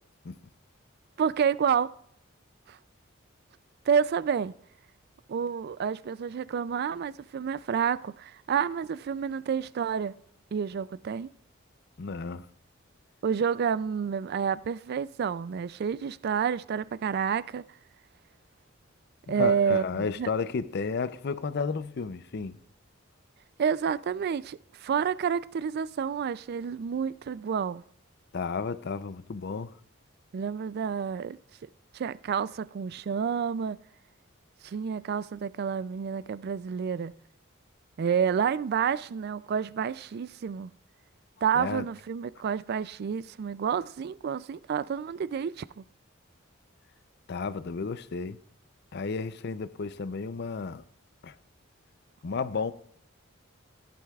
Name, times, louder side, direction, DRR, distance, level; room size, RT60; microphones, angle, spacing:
voice 1, 1.2-1.9 2.7-2.8 3.9-4.5 5.3-10.1 10.5-11.3 13.2-17.6 19.3-20.3 23.6-27.8 30.3-31.4 31.9-33.8 34.6-37.1 38.0-40.7 41.4-45.8, right 7 dB, 50° right, 0.3 m, -29 dB
voice 2, 12.0-12.5 19.3-22.6 28.3-29.7 41.5-41.8 47.3-48.4 48.9-50.8 51.2-51.3 52.2-52.7, left 4 dB, 55° left, 0.5 m, -32 dB
15.0 x 11.0 x 2.4 m
head